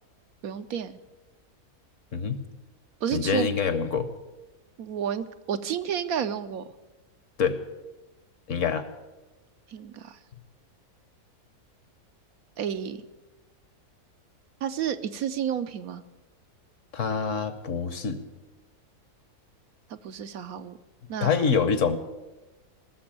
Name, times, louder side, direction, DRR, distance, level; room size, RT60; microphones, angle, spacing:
voice 1, 0.4-0.9 3.0-3.5 4.8-6.6 9.7-10.2 12.6-13.0 14.6-16.0 19.9-20.8 21.1-21.4, right 8 dB, 70° right, 10 dB, 1.1 m, -31 dB
voice 2, 2.1-2.4 3.1-4.1 7.4-7.6 8.5-8.9 16.9-18.2 21.2-22.0, left 6 dB, 55° left, 12 dB, 1.2 m, -25 dB
19.0 x 6.9 x 8.8 m, 1.1 s
omnidirectional pair, 1.6 m